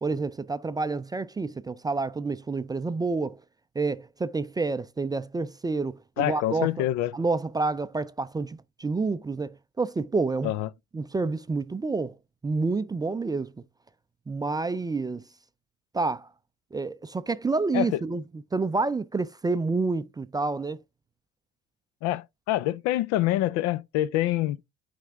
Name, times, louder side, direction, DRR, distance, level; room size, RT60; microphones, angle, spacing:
voice 1, 0.0-3.4 3.8-6.9 7.1-10.5 10.9-12.1 12.4-13.5 14.3-15.2 15.9-16.3 16.7-18.2 18.5-20.8, right 3 dB, 15° right, 0.4 m, -28 dB
voice 2, 6.2-7.1 10.4-10.7 17.7-18.0 22.0-24.6, left 14 dB, 70° left, 0.6 m, -26 dB
8.9 x 3.4 x 3.5 m
supercardioid pair, 75°, 29 cm